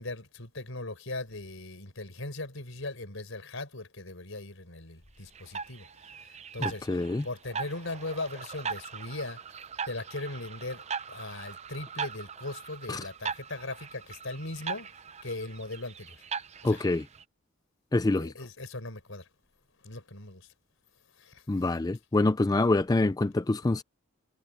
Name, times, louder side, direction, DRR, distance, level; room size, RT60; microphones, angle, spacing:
voice 1, 0.0-5.9 6.2-9.4 9.8-14.9 15.2-16.2 16.6-16.8 18.2-19.3 19.8-20.5 21.2-21.6, left 2 dB, 70° left, 4.8 m, -39 dB
sound 1, 5.4-17.2, right 6 dB, 30° right, 0.6 m, -40 dB
voice 2, 6.6-7.3 12.9-13.0 16.6-17.1 17.9-18.3 21.5-23.8, left 2 dB, 20° left, 0.4 m, -26 dB
head